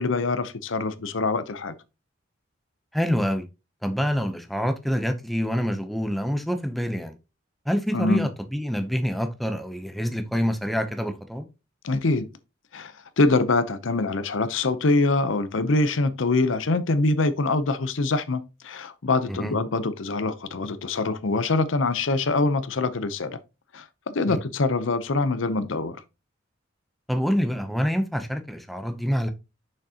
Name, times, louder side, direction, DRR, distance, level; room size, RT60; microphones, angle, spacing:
voice 1, 0.0-1.7 7.9-8.3 11.8-12.3 12.7-23.4 23.7-26.0, left 3 dB, 75° left, 0.7 m, -24 dB
voice 2, 2.9-3.5 3.8-7.1 7.7-11.5 19.3-19.6 24.3-24.4 27.1-29.3, equal, ahead, 0.6 m, -26 dB
6.5 x 6.2 x 2.8 m
head